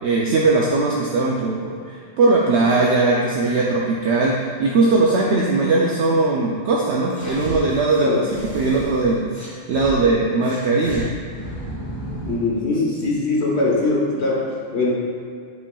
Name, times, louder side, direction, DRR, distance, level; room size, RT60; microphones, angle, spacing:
voice 1, 0.0-9.3 9.7-11.1 12.8-13.1, right 3 dB, 70° right, -3 dB, 0.9 m, -19 dB
sound 1, 7.1-9.9 10.4-12.5, equal, 15° left, 1.4 m, -34 dB
voice 2, 12.3-14.9, left 2 dB, 65° left, -3 dB, 1.4 m, -21 dB
8.1 x 5.6 x 2.3 m, 2.2 s
omnidirectional pair, 1.2 m